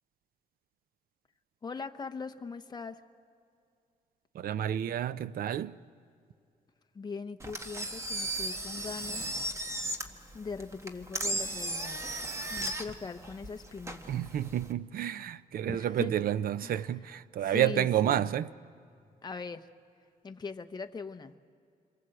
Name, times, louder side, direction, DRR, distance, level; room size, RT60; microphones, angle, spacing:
voice 1, 1.6-3.0 6.9-9.3 10.3-14.2 15.7-16.1 16.6-16.8 17.4-18.4 19.2-19.7 20.2-21.3, left 4 dB, 25° left, 0.9 m, -41 dB
voice 2, 4.3-5.8 14.1-18.5, right 11 dB, 75° right, 0.5 m, -30 dB
Engine, 7.4-14.7, right 1 dB, 20° right, 1.3 m, -36 dB
27.5 x 23.0 x 7.8 m
wide cardioid pair, 135°, 15 cm